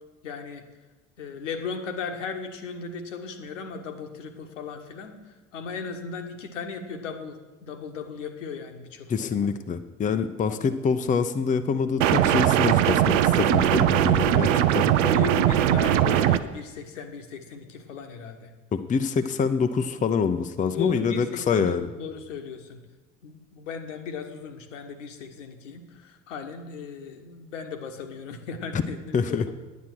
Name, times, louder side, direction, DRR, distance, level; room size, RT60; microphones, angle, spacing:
voice 1, 0.2-0.6 1.2-9.3 10.5-10.6 14.4-18.5 20.7-22.8 23.2-29.4, left 5 dB, 75° left, 5 dB, 1.2 m, -36 dB
voice 2, 9.1-14.5 14.7-14.9 18.7-21.9 28.7-28.8 29.1-29.5, left 6 dB, 20° left, 8 dB, 0.6 m, -25 dB
sound 1, 12.0-16.4, right 11 dB, 70° right, 0.6 m, -20 dB
9.8 x 9.2 x 6.1 m, 1.2 s
figure-of-eight pair, 60°, 38 cm